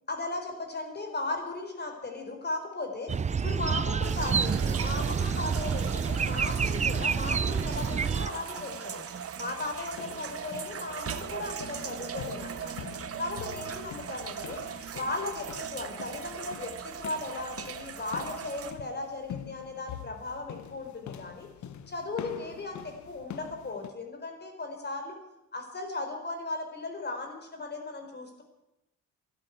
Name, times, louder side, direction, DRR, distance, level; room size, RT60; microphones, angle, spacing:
voice 1, 0.1-9.0 9.4-12.7 13.2-14.6 14.9-21.5 21.9-25.2 25.5-28.4, left 2 dB, 35° left, 4 dB, 4.4 m, -37 dB
sound 1, 3.1-8.3, right 6 dB, 25° right, 0.5 m, -28 dB
sound 2, 4.0-18.7, right 8 dB, 50° right, 1.3 m, -39 dB
sound 3, 9.6-23.9, left 9 dB, 70° left, 1.2 m, -45 dB
13.0 x 11.5 x 9.4 m, 0.91 s
cardioid pair, 90°, 30 cm